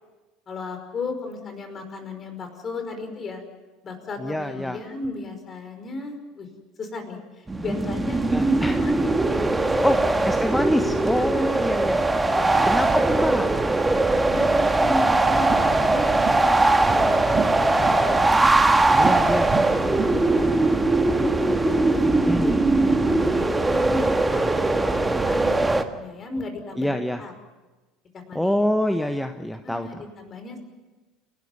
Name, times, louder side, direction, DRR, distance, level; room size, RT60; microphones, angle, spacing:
voice 1, 0.5-3.4 3.8-6.5 6.8-8.2 8.5-9.4 9.6-10.3 11.3-11.8 12.3-13.3 14.0-16.1 16.8-18.3 19.0-21.3 21.8-26.9 27.2-27.3 28.1-28.7 29.6-30.6, left 3 dB, 35° left, 6 dB, 5.3 m, -35 dB
voice 2, 4.2-4.8 8.3-8.8 9.8-10.0 10.3-12.0 12.6-13.5 18.9-19.5 22.2-22.5 25.6-25.7 26.8-27.2 28.3-29.9, left 1 dB, 5° left, 7 dB, 1.2 m, -25 dB
sound 1, 7.5-25.8, right 2 dB, 10° right, 1.7 m, -20 dB
sound 2, 15.2-20.6, right 6 dB, 35° right, 2.0 m, -33 dB
29.5 x 12.5 x 9.5 m, 1.2 s
hypercardioid pair, 70°, 0 cm